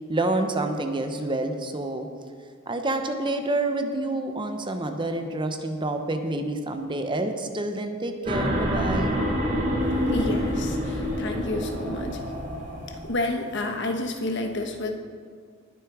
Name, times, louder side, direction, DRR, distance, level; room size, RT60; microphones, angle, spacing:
voice 1, 0.1-2.1 2.7-9.1, right 2 dB, 25° right, 6 dB, 0.8 m, -28 dB
sound 1, 8.2-13.2, equal, 40° right, 3.3 m, -27 dB
voice 2, 10.1-12.4 12.9-14.9, left 2 dB, 60° left, 4 dB, 1.3 m, -30 dB
19.5 x 6.9 x 4.8 m, 2.1 s
head